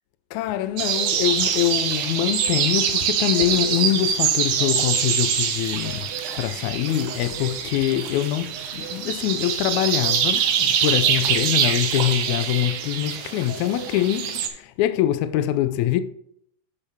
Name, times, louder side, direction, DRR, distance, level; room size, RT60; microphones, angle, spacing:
voice 1, 0.3-6.1 6.4-16.0, left 13 dB, 80° left, 1.8 m, -24 dB
sound 1, 0.8-14.5, right 8 dB, 80° right, 2.4 m, -24 dB
9.9 x 6.7 x 2.8 m
omnidirectional pair, 3.6 m